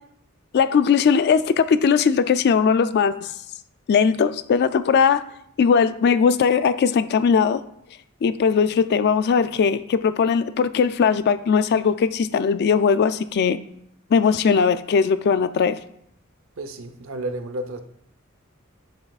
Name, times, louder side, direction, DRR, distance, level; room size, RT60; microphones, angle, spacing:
voice 1, 0.5-3.3 3.9-5.2 5.6-7.6 8.2-13.6 14.1-15.7, left 6 dB, 50° left, 12 dB, 0.3 m, -19 dB
voice 2, 16.6-17.8, right 1 dB, 65° right, 8 dB, 0.7 m, -31 dB
10.0 x 5.6 x 2.4 m, 0.72 s
head